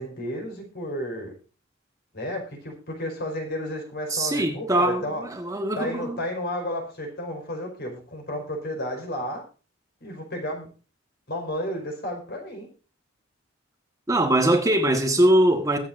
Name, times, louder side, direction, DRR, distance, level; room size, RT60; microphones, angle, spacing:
voice 1, 0.0-1.3 2.1-5.3 5.8-9.4 10.0-10.7 11.3-12.7, left 1 dB, 55° left, 4.9 m, -32 dB
voice 2, 4.1-6.2 14.1-15.8, right 1 dB, 15° right, 1.4 m, -22 dB
22.0 x 8.5 x 2.6 m
head